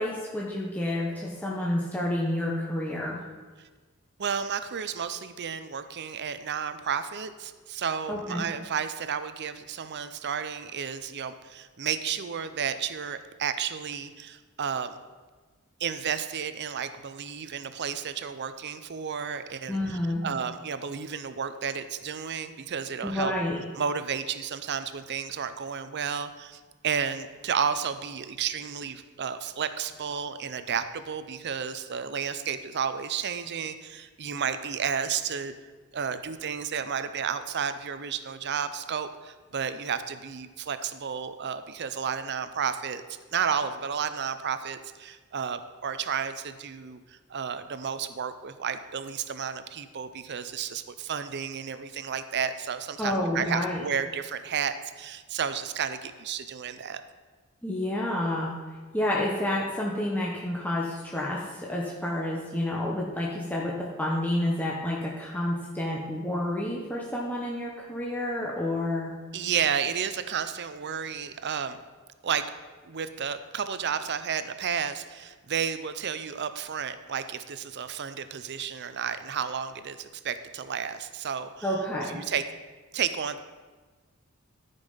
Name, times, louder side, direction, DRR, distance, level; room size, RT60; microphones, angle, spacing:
voice 1, 0.0-3.2 8.1-8.5 19.7-20.2 23.0-23.6 53.0-53.8 57.6-58.5 58.9-69.1 81.6-82.2, left 1 dB, 10° left, -4 dB, 1.0 m, -29 dB
voice 2, 4.2-15.0 15.8-23.3 23.8-35.5 35.9-57.0 69.3-71.8 72.2-72.5 72.8-82.4 82.9-83.4, right 7 dB, 50° right, 11 dB, 0.6 m, -32 dB
13.0 x 5.4 x 5.5 m, 1.4 s
head